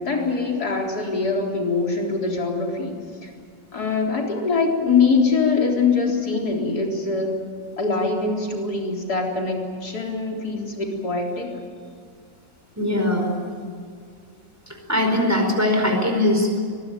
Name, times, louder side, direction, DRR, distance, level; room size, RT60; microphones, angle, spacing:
voice 1, 0.0-3.3 3.7-7.3 7.8-11.5, left 4 dB, 55° left, 0 dB, 4.4 m, -23 dB
voice 2, 12.8-13.4 14.7-16.6, left 1 dB, 10° right, 3 dB, 4.8 m, -21 dB
24.0 x 21.0 x 9.2 m, 2.1 s
omnidirectional pair, 2.0 m